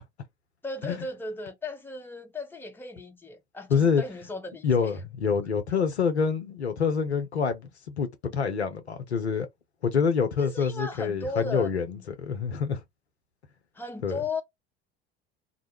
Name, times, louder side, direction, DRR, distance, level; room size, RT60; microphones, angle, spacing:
voice 1, 0.6-5.0 10.4-11.9 13.7-14.4, left 3 dB, 5° left, 0.6 m, -36 dB
voice 2, 3.7-4.0 4.6-9.5 9.8-12.8 14.0-14.2, left 6 dB, 85° left, 0.6 m, -26 dB
2.2 x 2.0 x 2.9 m
figure-of-eight pair, 65°, 32 cm